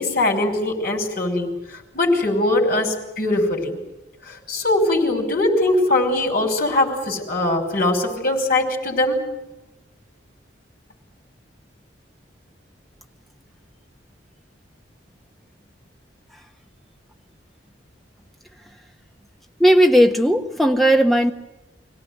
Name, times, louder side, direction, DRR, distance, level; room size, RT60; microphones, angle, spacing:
voice 1, 0.0-3.8 4.3-9.2, left 2 dB, 50° left, 2 dB, 5.5 m, -21 dB
voice 2, 19.6-21.3, equal, ahead, 4 dB, 1.5 m, -16 dB
25.5 x 17.5 x 9.7 m, 0.98 s
head